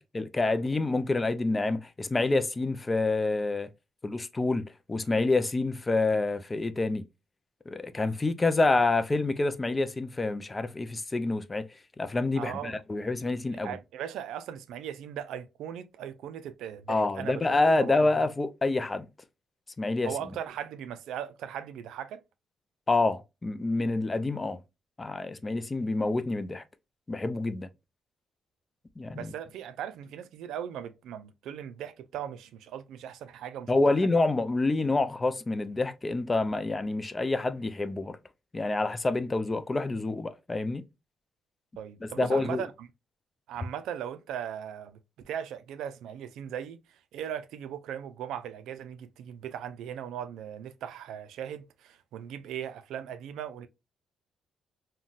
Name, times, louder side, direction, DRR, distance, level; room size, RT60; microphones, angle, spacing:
voice 1, 0.0-3.7 4.0-7.0 7.7-11.6 12.0-13.8 16.9-19.1 19.8-20.1 22.9-24.6 25.0-26.6 27.1-27.7 29.0-29.3 33.7-38.2 38.5-40.8 42.2-42.6, left 2 dB, 25° left, 0.3 m, -27 dB
voice 2, 12.4-12.8 13.6-18.2 20.0-22.2 29.1-34.1 41.8-42.9 43.5-53.7, right 9 dB, 85° right, 0.3 m, -38 dB
3.8 x 2.2 x 2.3 m
cardioid pair, 90°, 0 cm